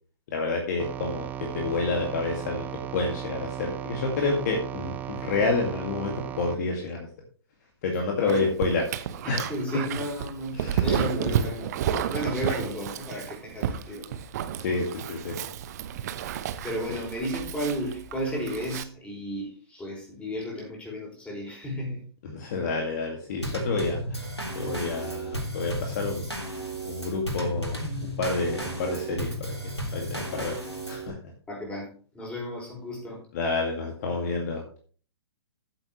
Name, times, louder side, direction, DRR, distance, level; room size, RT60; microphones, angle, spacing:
voice 1, 0.3-2.7 2.9-7.1 7.8-8.9 9.3-9.5 10.5-10.9 14.6-15.4 16.9-17.0 22.2-24.2 24.5-26.3 26.9-30.6 30.9-31.2 33.3-34.8, left 3 dB, 40° left, 1 dB, 2.1 m, -29 dB
sound 1, 0.8-6.6, right 11 dB, 10° right, 0.5 m, -36 dB
Dog, 8.3-18.8, right 9 dB, 40° right, 0.9 m, -31 dB
voice 2, 9.2-14.1 16.6-22.0 31.5-31.9 32.1-33.2, equal, 10° left, -2 dB, 5.2 m, -33 dB
Drum kit / Snare drum / Bass drum, 23.4-31.1, right 1 dB, 90° left, 3.5 m, -34 dB
14.5 x 7.8 x 3.2 m, 0.43 s
figure-of-eight pair, 120°, 14 cm